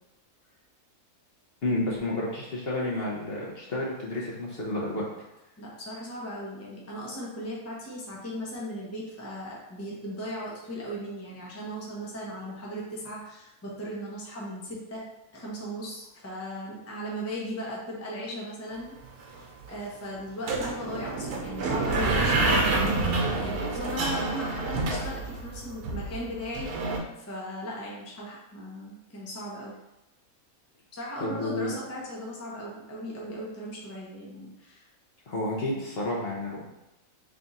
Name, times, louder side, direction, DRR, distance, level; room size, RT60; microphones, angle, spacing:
voice 1, 1.6-5.1 31.2-31.8 35.3-36.7, left 1 dB, 50° left, -4 dB, 0.8 m, -30 dB
voice 2, 5.6-15.0 15.3-19.0 19.2-29.8 30.9-34.8, equal, 15° left, -5 dB, 0.5 m, -37 dB
sound 1, 19.0-19.1 19.3-19.8 20.5-27.0, right 2 dB, 90° right, 1.2 m, -28 dB
3.5 x 2.5 x 4.0 m, 0.95 s
omnidirectional pair, 1.6 m